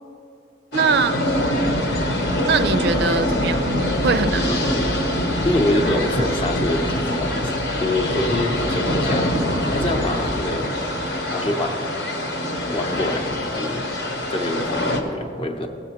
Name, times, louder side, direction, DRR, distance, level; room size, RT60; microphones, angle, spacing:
sound 1, 0.7-15.0, left 1 dB, 60° left, 0.9 m, -24 dB
voice 1, 0.7-1.2 2.5-3.7 4.0-4.6, right 4 dB, 60° right, 10 dB, 0.4 m, -21 dB
voice 2, 5.4-9.3 9.7-10.7 11.3-11.9 12.7-13.9 14.3-15.7, left 1 dB, 30° left, 3 dB, 0.6 m, -25 dB
16.0 x 8.4 x 2.9 m, 2.9 s
head